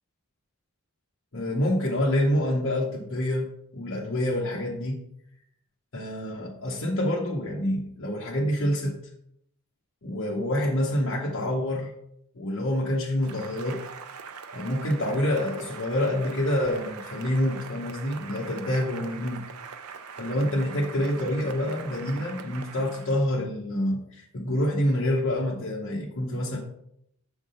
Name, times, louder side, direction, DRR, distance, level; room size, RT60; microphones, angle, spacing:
voice 1, 1.3-3.5 3.7-5.0 5.9-9.0 10.0-11.9 12.3-13.8 14.5-19.4 20.2-26.6, left 1 dB, 65° left, -4 dB, 1.0 m, -27 dB
Cheering / Applause, 13.2-23.3, right 6 dB, 85° right, 0.5 m, -42 dB
6.5 x 3.6 x 5.5 m, 0.74 s
head